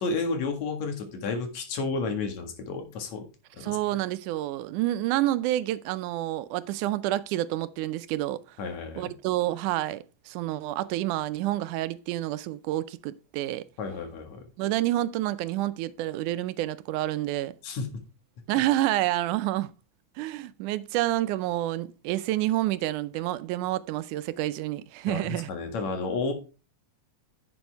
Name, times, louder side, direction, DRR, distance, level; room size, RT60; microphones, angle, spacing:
voice 1, 0.0-3.2 3.5-3.8 8.6-9.1 13.8-14.4 17.6-17.9 25.1-26.3, left 4 dB, 65° left, 3.0 m, -31 dB
voice 2, 3.6-8.4 9.0-13.6 14.6-17.5 18.5-19.7 20.2-25.5, right 15 dB, 90° right, 2.2 m, -28 dB
10.5 x 7.1 x 3.4 m
omnidirectional pair, 3.5 m